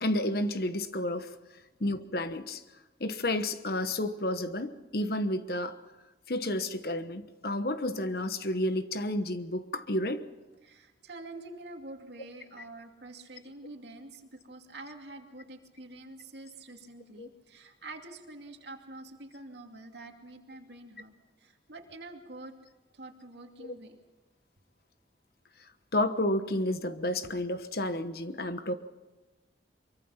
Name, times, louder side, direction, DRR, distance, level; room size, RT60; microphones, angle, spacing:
voice 1, 0.0-1.3 1.8-2.6 3.0-5.8 6.3-10.2 17.2-17.3 23.6-23.7 25.9-28.7, left 1 dB, 55° left, 1.2 m, -31 dB
voice 2, 10.6-22.6 22.9-24.0, right 2 dB, 70° right, 2.6 m, -47 dB
24.0 x 23.5 x 5.8 m
head